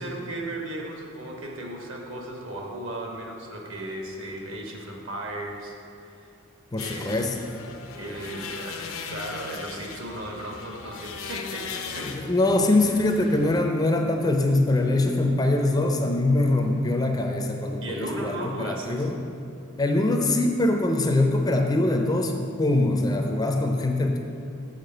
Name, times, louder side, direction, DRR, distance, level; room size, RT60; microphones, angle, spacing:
voice 1, 0.0-5.8 6.0-6.3 6.8-7.2 7.9-12.1 17.8-19.1, right 1 dB, 65° right, 0 dB, 1.2 m, -36 dB
voice 2, 6.7-7.4 12.0-19.2 19.8-24.2, left 2 dB, 20° left, 3 dB, 0.4 m, -23 dB
sound 1, 6.8-13.6, left 5 dB, 80° left, 0.7 m, -38 dB
6.6 x 5.7 x 6.5 m, 2.5 s
head